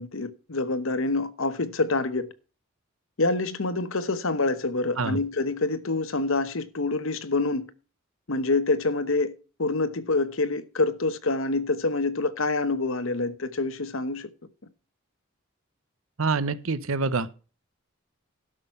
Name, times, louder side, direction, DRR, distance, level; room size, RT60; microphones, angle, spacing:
voice 1, 0.0-2.3 3.2-7.7 8.3-9.3 9.6-14.3, left 3 dB, 70° left, 1.1 m, -26 dB
voice 2, 16.2-17.3, right 4 dB, 70° right, 0.9 m, -26 dB
12.5 x 6.2 x 5.6 m
head